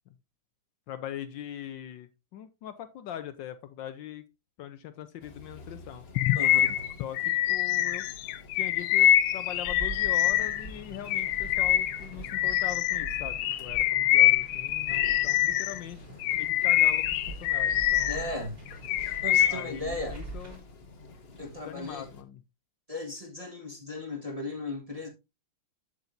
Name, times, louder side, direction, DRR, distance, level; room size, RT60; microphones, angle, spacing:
voice 1, 0.9-4.2 4.6-6.0 7.0-8.1 8.6-17.1 17.4-18.4 19.5-20.6 21.4-22.4, left 10 dB, 75° left, 1.3 m, -42 dB
sound 1, 5.2-22.2, left 2 dB, 35° left, 1.2 m, -51 dB
Bird vocalization bird call bird song, 6.2-10.7 11.1-15.8 16.2-18.3 18.7-19.7, left 13 dB, 90° left, 1.4 m, -25 dB
voice 2, 6.3-6.9 18.1-18.6 19.0-20.2 21.4-22.1 22.9-25.1, left 2 dB, 20° right, 1.4 m, -36 dB
sound 2, 9.6-20.6, right 2 dB, 45° right, 3.5 m, -44 dB
8.0 x 7.7 x 2.6 m
omnidirectional pair, 2.2 m